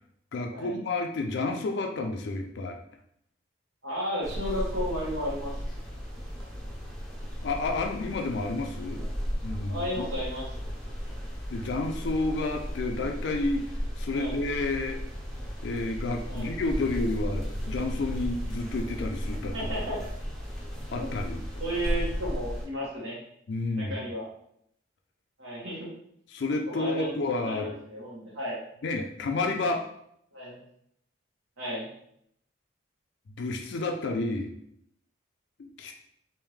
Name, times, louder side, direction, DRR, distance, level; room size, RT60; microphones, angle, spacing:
voice 1, 0.3-2.8 7.4-9.1 9.4-10.1 11.5-13.6 14.0-15.0 15.6-19.6 20.9-21.4 23.5-23.9 26.3-27.7 28.8-29.8 33.4-34.5 35.6-35.9, left 2 dB, 65° left, 3 dB, 0.4 m, -30 dB
voice 2, 3.8-5.6 9.7-10.4 14.1-14.4 16.3-16.5 19.5-20.0 21.0-21.1 21.6-23.2 23.7-24.2 25.4-25.9 26.6-27.1 27.4-28.6 30.3-30.6 31.6-31.9, equal, 85° right, -4 dB, 1.3 m, -33 dB
sound 1, 4.2-22.7, equal, ahead, 0.5 m, -35 dB
3.5 x 2.6 x 3.2 m, 0.72 s
head